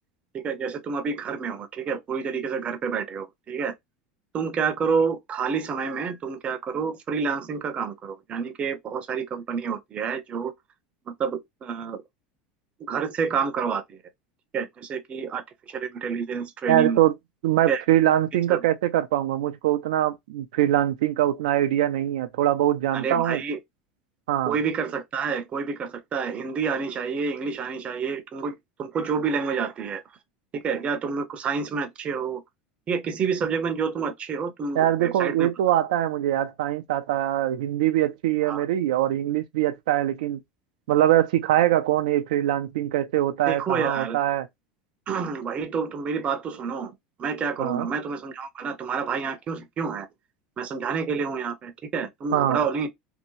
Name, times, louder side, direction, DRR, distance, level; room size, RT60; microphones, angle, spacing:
voice 1, 0.3-3.7 4.3-10.5 11.1-12.0 12.8-14.0 14.5-17.0 17.7-17.8 18.5-18.6 22.9-23.6 24.5-30.0 30.5-32.4 32.9-35.5 38.4-38.6 43.5-44.2 45.1-46.9 47.2-50.1 50.6-52.9, right 5 dB, 30° right, 0.6 m, -28 dB
voice 2, 16.7-17.1 17.4-23.4 24.3-24.5 34.8-40.4 40.9-44.5 47.6-47.9 52.3-52.6, right 12 dB, 80° right, 0.3 m, -23 dB
2.7 x 2.0 x 2.9 m
supercardioid pair, 110°, 4 cm